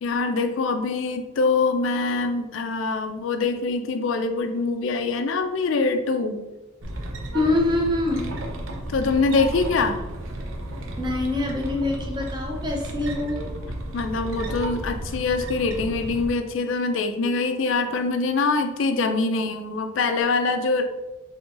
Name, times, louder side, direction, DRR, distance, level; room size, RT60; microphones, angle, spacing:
voice 1, 0.0-6.4 8.9-10.0 13.9-20.9, left 3 dB, 75° left, 7 dB, 0.4 m, -24 dB
sound 1, 6.8-16.3, right 1 dB, 80° right, 0.6 m, -33 dB
voice 2, 7.3-8.3 11.0-13.4, left 2 dB, 20° right, 1 dB, 0.6 m, -24 dB
3.8 x 3.4 x 2.4 m, 1.1 s
head